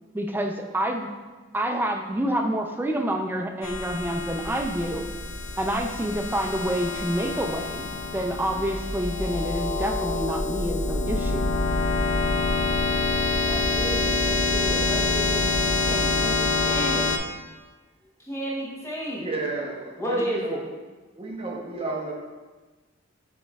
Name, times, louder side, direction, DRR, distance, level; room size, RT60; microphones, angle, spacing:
voice 1, 0.1-1.1 1.5-5.0 5.6-11.5, right 1 dB, 10° right, 3 dB, 0.3 m, -28 dB
sound 1, 3.6-17.2, left 3 dB, 65° left, 0.4 m, -26 dB
voice 2, 13.5-17.1 18.3-19.2 20.0-20.6, equal, 15° left, -5 dB, 0.8 m, -32 dB
voice 3, 19.1-20.6 21.1-22.1, right 2 dB, 30° right, -2 dB, 0.8 m, -32 dB
7.1 x 3.0 x 2.3 m, 1.3 s
head